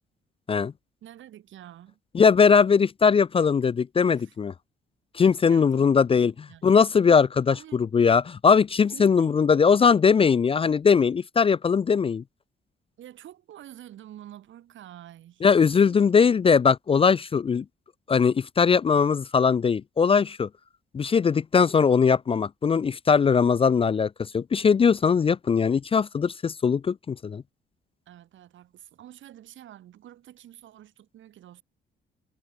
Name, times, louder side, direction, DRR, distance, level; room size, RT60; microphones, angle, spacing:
voice 1, 1.0-2.0 4.1-4.4 5.2-6.9 7.5-7.8 8.9-9.4 13.0-16.3 28.1-31.6, right 12 dB, 75° right, 4.1 m, -48 dB
voice 2, 2.1-4.5 5.1-6.3 6.6-7.5 7.9-12.2 15.4-17.6 18.1-20.5 20.9-27.4, left 6 dB, 30° left, 0.4 m, -20 dB
cardioid pair, 90°, 20 cm